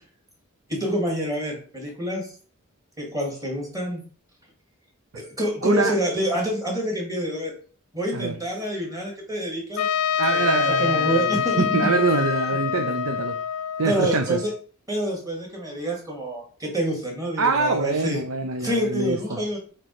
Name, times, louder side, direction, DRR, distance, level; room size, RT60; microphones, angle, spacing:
voice 1, 0.7-2.3 3.0-4.0 5.1-7.5 7.9-9.9 10.3-11.6 12.7-12.8 13.8-14.5 14.9-18.2 18.6-19.6, equal, 15° right, 2.4 m, -27 dB
voice 2, 5.6-5.9 8.1-8.3 10.2-11.2 11.6-13.3 13.8-14.4 17.4-19.2, right 3 dB, 70° right, 0.7 m, -24 dB
Trumpet, 9.8-14.6, left 8 dB, 85° left, 0.4 m, -25 dB
8.3 x 3.1 x 4.8 m
head